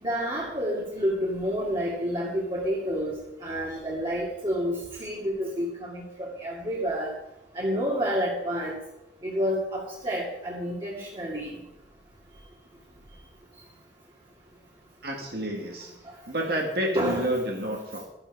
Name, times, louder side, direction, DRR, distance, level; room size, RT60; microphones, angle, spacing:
voice 1, 0.0-3.1 3.4-7.1 7.5-8.8 9.2-11.6 16.1-16.2 16.9-17.3, equal, 25° right, -4 dB, 2.2 m, -29 dB
voice 2, 15.0-15.9 16.3-18.0, right 1 dB, 55° right, 0 dB, 1.9 m, -29 dB
13.0 x 10.5 x 4.8 m, 0.88 s
head